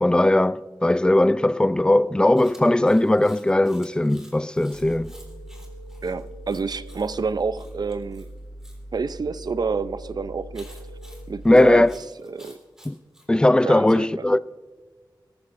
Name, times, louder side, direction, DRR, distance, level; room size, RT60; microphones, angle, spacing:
voice 1, 0.0-5.1 11.4-11.9 12.9-13.0 13.3-14.4, left 1 dB, 10° left, 0.3 m, -19 dB
Chewing mastication, 2.4-8.8 10.5-13.3, equal, 5° right, 3.4 m, -52 dB
sound 1, 4.7-11.9, right 1 dB, 60° left, 5.4 m, -41 dB
sound 2, 5.1-7.1 9.1-11.1, right 2 dB, 40° right, 5.3 m, -49 dB
voice 2, 6.0-8.3 8.9-10.8 11.3-11.8 12.2-12.6 13.6-14.2, right 4 dB, 55° right, 0.5 m, -28 dB
24.0 x 13.5 x 2.6 m
wide cardioid pair, 95°, 8 cm